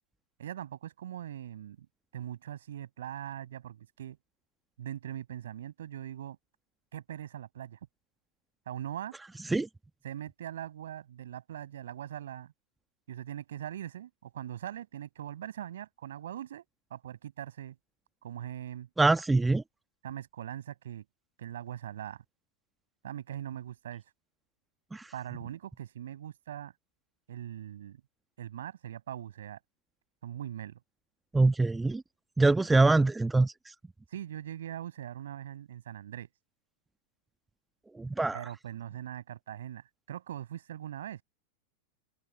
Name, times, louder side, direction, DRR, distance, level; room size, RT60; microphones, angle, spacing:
voice 1, 0.4-1.9 2.1-4.2 4.8-6.4 6.9-7.8 8.7-9.2 10.0-12.5 13.1-16.6 16.9-17.8 18.2-18.9 20.0-21.0 21.4-22.2 23.0-24.0 25.1-26.7 27.3-28.0 28.4-29.6 30.2-30.8 34.1-36.3 38.3-41.2, right 11 dB, 60° right, 5.9 m, -41 dB
voice 2, 19.0-19.6 24.9-25.1 31.3-32.0 32.4-33.7 37.9-38.4, right 3 dB, 10° right, 1.3 m, -24 dB
open air
figure-of-eight pair, 90°, 0 cm